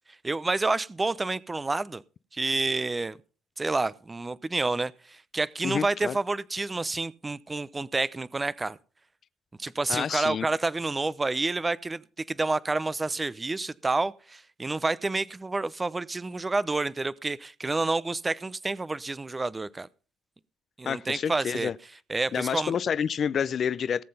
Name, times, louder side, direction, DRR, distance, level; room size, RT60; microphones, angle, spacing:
voice 1, 0.2-2.0 2.3-3.2 3.6-8.8 9.6-19.9 20.8-21.7 22.1-22.7, right 3 dB, 20° right, 0.7 m, -29 dB
voice 2, 5.6-6.2 9.9-10.5 20.9-21.7 22.3-24.0, left 7 dB, 50° left, 0.5 m, -28 dB
18.0 x 7.6 x 5.5 m
supercardioid pair, 70°, 0 cm